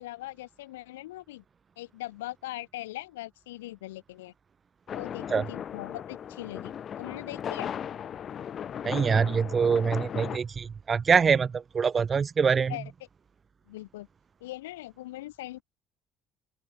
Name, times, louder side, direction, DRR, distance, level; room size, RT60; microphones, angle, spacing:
voice 1, 0.0-1.4 1.8-4.3 4.9-7.7 12.7-12.9 13.7-14.1 14.4-15.6, left 17 dB, 80° left, 2.4 m, -40 dB
sound 1, 4.9-10.4, left 9 dB, 50° left, 7.0 m, -37 dB
voice 2, 8.8-12.7, right 6 dB, 35° right, 0.5 m, -24 dB
open air
figure-of-eight pair, 55°, 0 cm